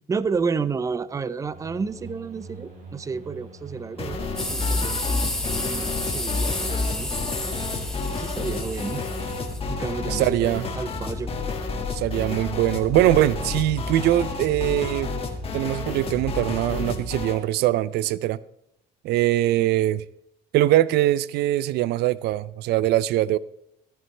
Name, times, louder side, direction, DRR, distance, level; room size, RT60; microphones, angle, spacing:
voice 1, 0.1-4.2 4.5-5.3 5.6-7.1 8.1-9.1 9.7-11.3, right 5 dB, 20° right, 0.5 m, -31 dB
sound 1, 1.5-16.4, right 2 dB, 55° right, 4.5 m, -43 dB
sound 2, 4.0-17.4, left 3 dB, 35° left, 1.8 m, -30 dB
sound 3, 4.4-9.6, left 1 dB, 5° left, 1.8 m, -31 dB
voice 2, 10.1-10.7 11.9-15.1 15.5-18.4 19.0-20.0 20.5-23.4, right 14 dB, 75° right, 0.4 m, -22 dB
15.0 x 11.0 x 3.2 m
cardioid pair, 110°, 17 cm